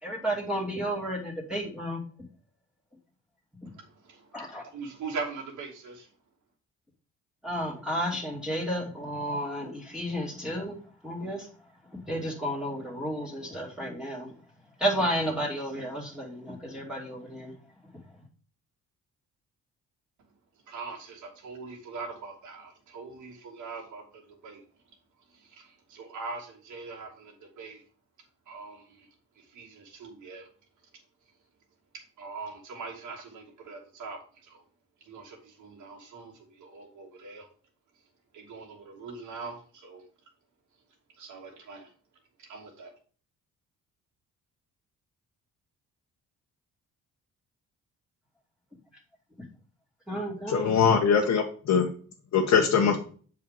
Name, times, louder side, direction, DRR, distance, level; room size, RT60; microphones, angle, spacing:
voice 1, 0.0-2.0 4.3-4.6 7.4-11.5 11.9-14.3 14.8-17.5 17.9-18.0 50.1-50.9, equal, ahead, -3 dB, 2.5 m, -32 dB
voice 2, 3.6-6.1 20.7-24.6 25.3-27.8 28.5-29.1 29.5-30.5 32.2-34.6 35.0-37.5 38.3-40.0 41.2-41.9 42.4-42.9, right 4 dB, 75° right, -1 dB, 2.9 m, -42 dB
voice 3, 50.5-51.9 52.3-53.0, left 6 dB, 65° left, 0 dB, 1.4 m, -22 dB
7.8 x 5.0 x 5.1 m, 0.42 s
cardioid pair, 90°, 30 cm